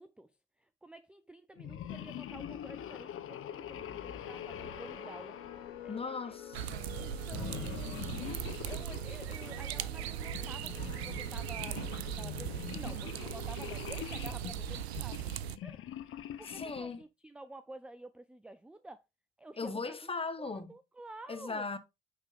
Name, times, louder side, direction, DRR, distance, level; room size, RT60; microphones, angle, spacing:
voice 1, 0.0-5.4 5.6-6.4 6.9-15.2 15.6-19.0 19.4-21.7, right 2 dB, 5° right, 0.4 m, -51 dB
sound 1, 1.6-6.4 7.3-9.6 10.2-17.0, left 10 dB, 45° left, 0.8 m, -44 dB
sound 2, 3.7-13.9, left 9 dB, 75° left, 1.3 m, -50 dB
voice 2, 5.9-7.0 16.5-17.0 19.6-20.7 21.3-21.8, left 4 dB, 20° left, 1.1 m, -38 dB
sound 3, 6.5-15.6, right 11 dB, 80° right, 0.5 m, -39 dB
9.9 x 3.6 x 3.5 m
figure-of-eight pair, 55°, 31 cm